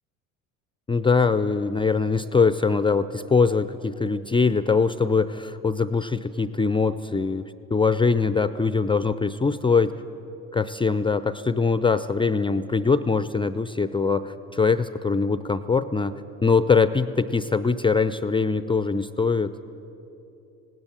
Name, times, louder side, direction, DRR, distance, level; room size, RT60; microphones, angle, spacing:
voice 1, 0.9-9.9 10.5-19.6, left 4 dB, 10° left, 13 dB, 0.5 m, -22 dB
18.5 x 17.5 x 9.9 m, 3.0 s
hypercardioid pair, 65°, 42 cm